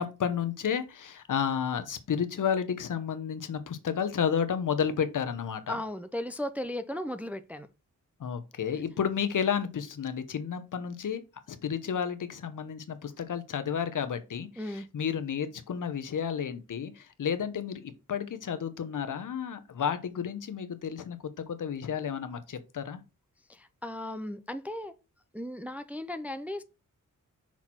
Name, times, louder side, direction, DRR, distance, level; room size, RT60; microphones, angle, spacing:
voice 1, 0.0-5.8 8.2-11.2 11.5-23.0, left 7 dB, 70° left, 0.9 m, -31 dB
voice 2, 5.7-7.7 14.6-14.9 23.5-24.9 25.3-26.6, left 1 dB, 5° right, 0.3 m, -36 dB
5.8 x 4.4 x 4.2 m
wide cardioid pair, 155°, 32 cm